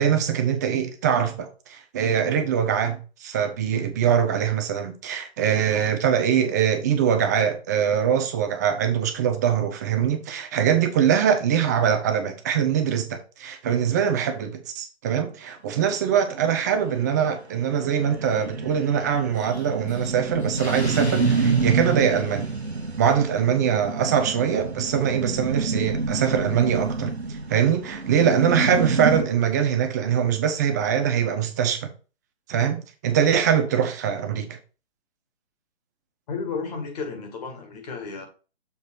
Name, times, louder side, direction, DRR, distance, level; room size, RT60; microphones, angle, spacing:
voice 1, 0.0-22.5 23.0-27.1 27.5-31.9 32.5-34.6, right 8 dB, 15° right, 0.5 m, -23 dB
sound 1, 16.5-16.6 17.0-17.1 17.3-17.4 17.7-29.2, right 4 dB, 85° right, 1.0 m, -27 dB
Explosion, 19.4-23.2, left 2 dB, 85° left, 1.8 m, -39 dB
voice 2, 36.3-38.3, left 5 dB, 40° left, 1.9 m, -32 dB
6.8 x 3.9 x 4.5 m
figure-of-eight pair, 130°, 31 cm